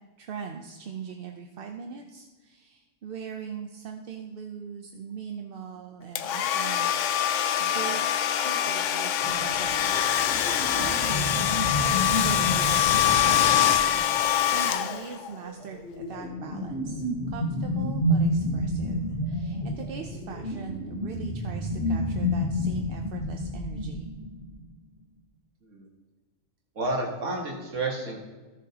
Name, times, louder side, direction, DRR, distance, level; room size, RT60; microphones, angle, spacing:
voice 1, 0.2-6.9 7.2-9.8 10.5-13.7 14.0-24.1, right 7 dB, 55° right, 3 dB, 0.8 m, -41 dB
Domestic sounds home sounds, 6.2-15.3, left 10 dB, 75° left, 0.9 m, -24 dB
sound 1, 9.2-14.4 15.3-24.6, equal, 55° left, 1.6 m, -30 dB
voice 2, 26.8-28.2, right 2 dB, 70° right, -2 dB, 1.8 m, -30 dB
15.0 x 7.2 x 2.8 m, 1.3 s
omnidirectional pair, 1.3 m